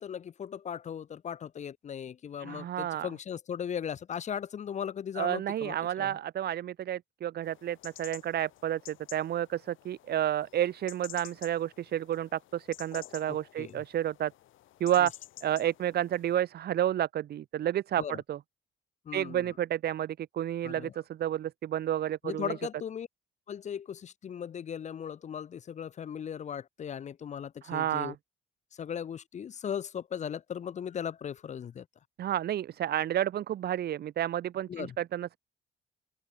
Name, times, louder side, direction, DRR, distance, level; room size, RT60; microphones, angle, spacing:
voice 1, 0.0-6.2 13.3-13.8 18.0-18.2 19.1-19.4 20.6-20.9 22.2-23.1 23.5-28.1 28.7-31.9 34.7-35.0, left 8 dB, 35° left, 0.4 m, -38 dB
voice 2, 2.4-3.1 5.2-14.3 14.8-15.1 15.4-18.4 19.1-22.6 27.6-28.2 32.2-35.4, right 11 dB, 55° right, 0.5 m, -31 dB
sound 1, 7.4-16.4, left 14 dB, 80° left, 1.3 m, -51 dB
open air
cardioid pair, 90°, 20 cm